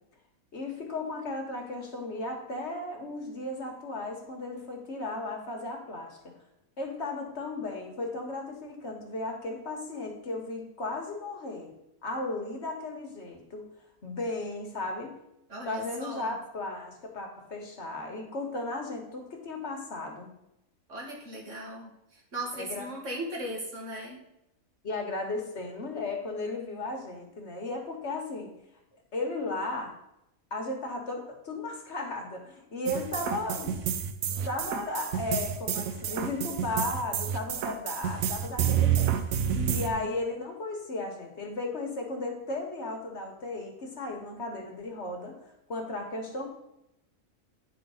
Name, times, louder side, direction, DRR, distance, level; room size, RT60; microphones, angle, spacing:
voice 1, 0.5-6.3 6.8-13.6 14.0-15.2 15.6-20.3 22.5-22.8 24.8-28.5 29.1-29.9 30.5-33.7 34.4-46.5, left 2 dB, 55° left, 2 dB, 1.5 m, -35 dB
voice 2, 15.5-16.4 20.9-24.2 39.5-40.1, right 1 dB, 60° right, -1 dB, 2.0 m, -38 dB
sound 1, 32.9-39.9, right 9 dB, 85° right, 1.1 m, -29 dB
9.2 x 4.1 x 5.5 m, 0.84 s
omnidirectional pair, 1.4 m